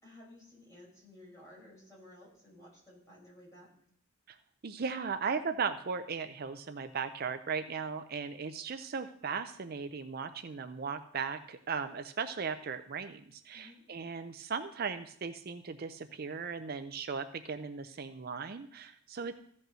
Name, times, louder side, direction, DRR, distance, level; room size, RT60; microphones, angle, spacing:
voice 1, 0.0-3.7 13.5-13.8, left 1 dB, 15° left, -5 dB, 5.6 m, -55 dB
voice 2, 4.6-19.3, right 5 dB, 50° right, 9 dB, 0.5 m, -37 dB
15.0 x 5.4 x 6.2 m, 0.66 s
head